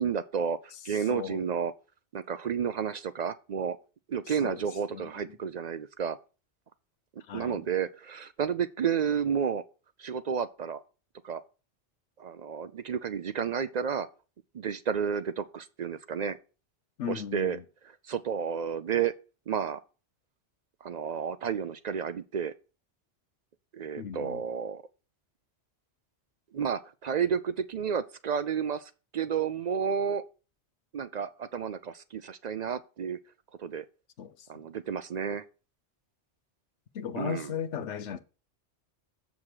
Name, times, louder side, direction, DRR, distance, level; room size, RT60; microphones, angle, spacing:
voice 1, 0.0-1.7 2.1-3.8 4.1-6.2 7.3-9.6 10.0-10.8 11.2-11.4 12.2-14.1 14.5-16.4 17.1-17.6 18.1-19.1 19.5-19.8 20.8-22.5 23.7-24.8 26.5-30.2 30.9-33.2 33.6-33.8 34.5-35.4 37.2-37.5, right 7 dB, 55° right, 0.4 m, -31 dB
voice 2, 0.9-1.4 4.3-4.6 4.9-5.1 7.3-7.6 17.0-17.6 24.0-24.4 34.2-34.5 36.9-38.2, left 8 dB, 90° left, 1.1 m, -36 dB
7.4 x 6.2 x 4.9 m
omnidirectional pair, 1.2 m